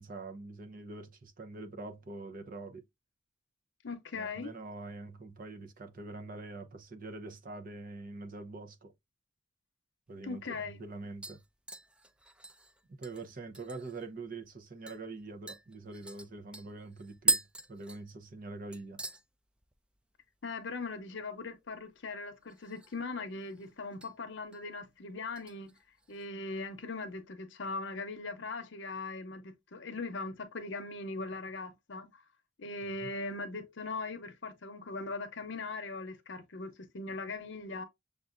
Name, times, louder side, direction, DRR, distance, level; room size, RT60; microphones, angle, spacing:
voice 1, 0.0-2.8 4.1-8.9 10.1-11.4 13.0-17.4 17.7-19.0 33.0-33.1, right 3 dB, 45° right, 0.7 m, -44 dB
voice 2, 3.8-4.5 10.2-10.8 20.4-25.7 26.1-32.2 32.6-37.8, left 3 dB, 70° left, 0.7 m, -40 dB
sound 1, 10.1-10.2 10.6-10.9 11.2-14.1 14.4-14.5 14.9-15.0 15.5-18.5 18.7-19.2 19.6-20.0 20.2-20.3 22.4-23.1 23.4-24.1 24.5-24.8 25.4-26.3 26.6-26.7, right 2 dB, 5° right, 0.3 m, -38 dB
6.6 x 2.4 x 2.5 m
head